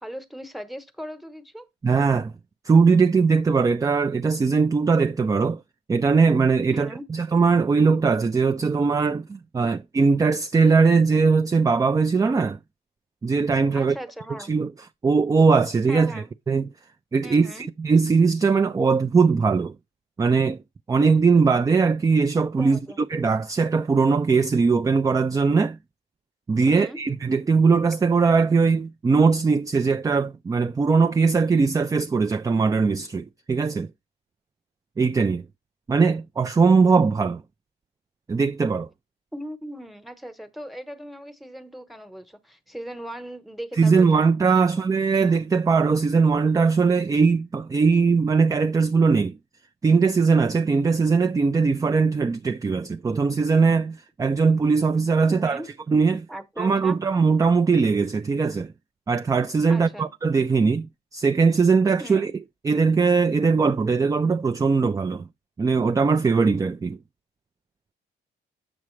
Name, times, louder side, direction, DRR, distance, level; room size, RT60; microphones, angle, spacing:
voice 1, 0.0-1.7 6.7-7.0 13.7-14.5 15.9-16.3 17.2-17.7 22.6-23.0 26.7-27.0 39.3-44.9 55.3-55.7 56.3-57.0 59.7-60.1 62.0-62.3, equal, ahead, 1.0 m, -38 dB
voice 2, 1.8-2.3 2.6-5.6 5.9-12.6 13.2-14.0 14.5-14.7 15.0-16.1 16.5-16.7 17.1-19.7 20.2-20.6 20.9-25.8 26.5-33.9 35.0-35.4 35.9-37.4 38.3-38.9 43.8-49.4 49.8-55.6 55.9-56.3 56.6-58.7 59.1-62.3 62.6-65.3 65.6-67.0, right 4 dB, 15° right, 0.3 m, -20 dB
7.4 x 5.9 x 3.1 m
cardioid pair, 90°, 20 cm